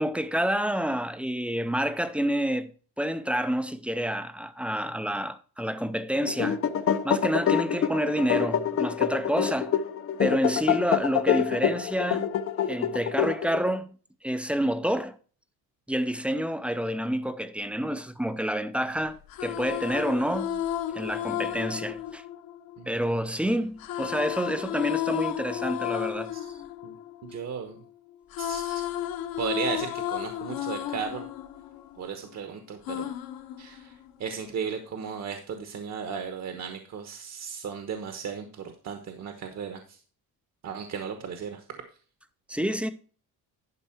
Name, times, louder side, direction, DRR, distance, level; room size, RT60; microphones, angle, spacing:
voice 1, 0.0-6.6 7.0-9.8 10.2-12.3 12.7-14.0 14.2-15.2 15.9-20.6 20.9-22.2 22.9-26.3 42.5-42.9, equal, 5° right, 0.5 m, -28 dB
sound 1, 6.2-13.8, left 9 dB, 35° left, 0.7 m, -26 dB
sound 2, 19.1-23.2 23.8-27.8 28.1-32.3 32.8-34.3, left 12 dB, 65° left, 1.2 m, -33 dB
voice 2, 27.2-27.8 28.4-28.8 29.4-31.3 32.0-33.1 33.6-33.9 34.2-40.0 40.6-41.6, right 6 dB, 45° right, 1.2 m, -35 dB
11.0 x 5.5 x 4.5 m
cardioid pair, 150°, 38 cm